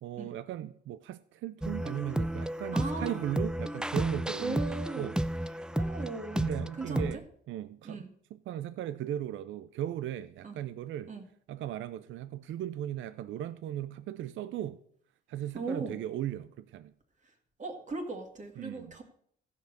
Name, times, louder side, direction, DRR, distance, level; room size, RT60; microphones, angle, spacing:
voice 1, 0.0-5.2 5.5-5.6 6.3-11.1 11.5-14.8 15.3-16.9 18.6-18.9, right 11 dB, 75° right, 0.5 m, -37 dB
sound 1, 1.6-7.2, right 1 dB, 5° right, 0.4 m, -32 dB
voice 2, 2.7-3.2 4.4-5.1 5.7-6.4 6.8-7.2 7.8-8.1 10.4-10.6 11.1-11.2 15.5-16.0 17.6-19.0, right 3 dB, 40° right, 2.0 m, -38 dB
14.5 x 5.3 x 6.4 m
cardioid pair, 90°, 20 cm